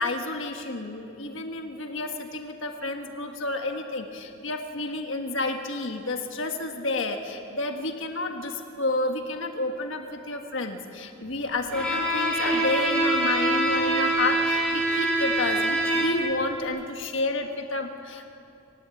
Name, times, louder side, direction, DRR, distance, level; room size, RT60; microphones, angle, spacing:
voice 1, 0.0-18.3, left 2 dB, 70° left, 4 dB, 1.6 m, -30 dB
Bowed string instrument, 11.7-16.4, right 1 dB, 5° left, 6.5 m, -24 dB
25.5 x 16.0 x 9.8 m, 2.8 s
head